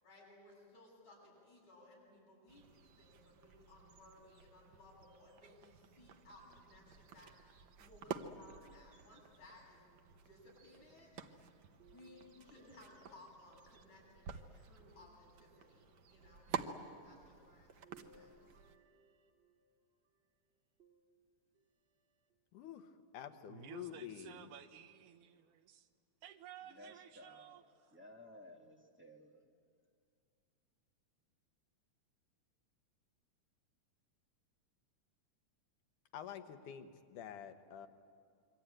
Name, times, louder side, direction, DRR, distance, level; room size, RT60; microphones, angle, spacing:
voice 1, 0.0-9.8 10.1-11.5 11.8-18.6, left 2 dB, 70° left, -4 dB, 9.5 m, -61 dB
sound 1, 2.5-18.8, right 7 dB, 65° right, 1.2 m, -50 dB
sound 2, 11.8-14.1 14.8-15.8 17.8-19.9 20.8-21.7 22.3-22.4 23.8-23.9, right 3 dB, 25° right, 1.8 m, -66 dB
voice 2, 22.5-24.5 36.1-37.9, left 9 dB, 90° left, 8 dB, 2.7 m, -49 dB
voice 3, 23.5-25.9 26.2-27.6, right 9 dB, 85° right, 8 dB, 2.6 m, -54 dB
voice 4, 26.6-27.6 27.9-29.5, left 1 dB, 5° right, 0 dB, 1.1 m, -57 dB
27.0 x 23.5 x 9.0 m, 2.3 s
omnidirectional pair, 3.5 m